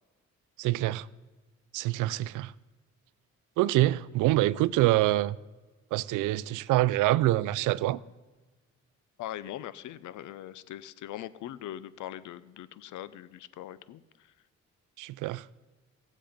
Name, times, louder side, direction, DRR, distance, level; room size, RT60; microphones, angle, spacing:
voice 1, 0.6-1.1 1.7-2.5 3.6-5.4 5.9-8.0 15.0-15.5, right 16 dB, 90° right, 0.5 m, -25 dB
voice 2, 9.2-14.0, left 12 dB, 80° left, 0.7 m, -41 dB
18.0 x 7.5 x 5.1 m
cardioid pair, 90°, 30 cm